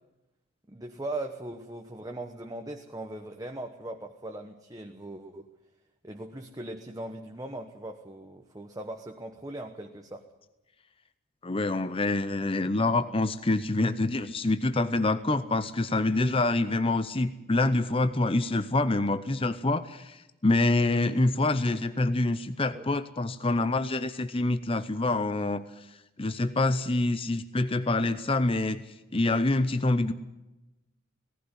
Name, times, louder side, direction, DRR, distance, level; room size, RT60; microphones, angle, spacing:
voice 1, 0.7-5.5 6.0-10.2 22.7-22.9, right 1 dB, 15° right, 3 dB, 1.0 m, -39 dB
voice 2, 11.4-25.9 26.2-28.8 29.1-30.1, left 2 dB, 25° left, 11 dB, 0.7 m, -26 dB
18.5 x 15.5 x 9.7 m, 0.98 s
head